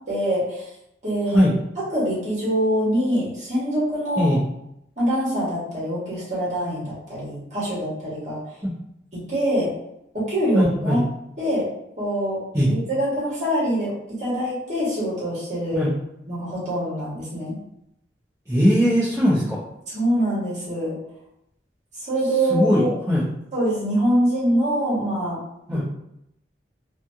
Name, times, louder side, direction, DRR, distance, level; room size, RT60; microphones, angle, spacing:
voice 1, 0.1-0.6 1.0-1.5 1.9-4.3 5.0-8.4 9.1-9.7 10.1-11.1 11.4-11.7 12.0-15.9 16.3-17.6 19.9-21.0 21.9-22.9 23.5-25.4 25.7-25.8, equal, 40° right, -8 dB, 1.5 m, -24 dB
voice 2, 10.5-11.0 12.5-12.7 15.7-15.9 18.5-19.6 22.5-23.3 25.7-25.8, equal, 15° right, -12 dB, 0.8 m, -19 dB
3.1 x 2.3 x 2.7 m, 0.79 s
head